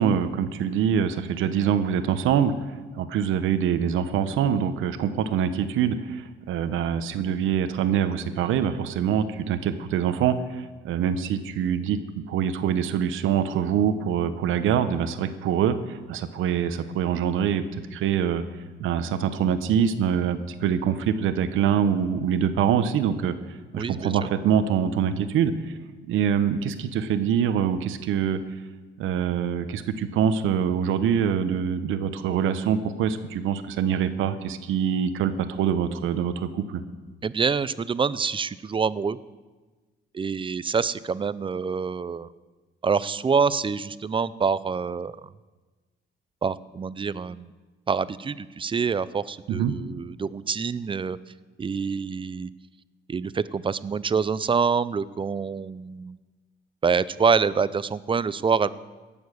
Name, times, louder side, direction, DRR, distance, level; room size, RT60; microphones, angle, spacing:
voice 1, 0.0-2.5 3.0-12.0 12.3-17.6 17.9-18.4 18.8-23.3 23.7-25.8 26.1-28.4 29.0-36.8 49.5-49.8, right 8 dB, 85° right, 11 dB, 1.0 m, -24 dB
voice 2, 23.8-24.1 37.2-39.2 40.1-42.3 42.8-45.2 46.4-47.5 47.9-51.2 51.6-52.5 53.1-56.2 56.8-58.7, right 5 dB, 25° right, 17 dB, 0.5 m, -26 dB
17.5 x 7.2 x 6.4 m, 1.3 s
cardioid pair, 90°, 20 cm